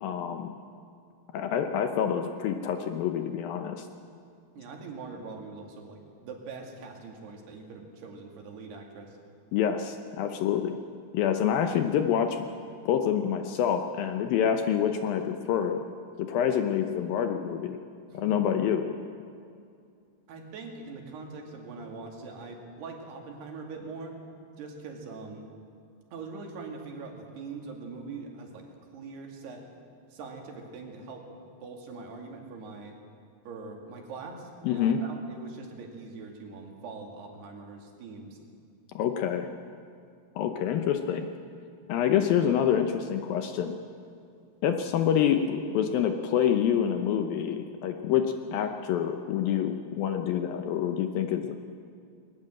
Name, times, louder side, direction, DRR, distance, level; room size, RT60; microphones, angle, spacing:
voice 1, 0.0-0.5 1.3-3.9 9.5-10.8 11.1-12.4 12.9-15.8 16.2-17.8 18.1-18.8 34.6-35.0 39.0-39.5 40.4-41.3 41.9-43.8 44.6-48.3 48.5-51.6, left 9 dB, 75° left, 6 dB, 2.3 m, -27 dB
voice 2, 4.6-9.2 18.1-18.3 20.3-24.2 24.6-25.5 26.1-28.7 28.9-29.6 30.1-31.3 31.6-33.0 33.5-38.4, right 4 dB, 75° right, 1 dB, 4.4 m, -42 dB
20.5 x 20.0 x 7.8 m, 2.4 s
omnidirectional pair, 4.8 m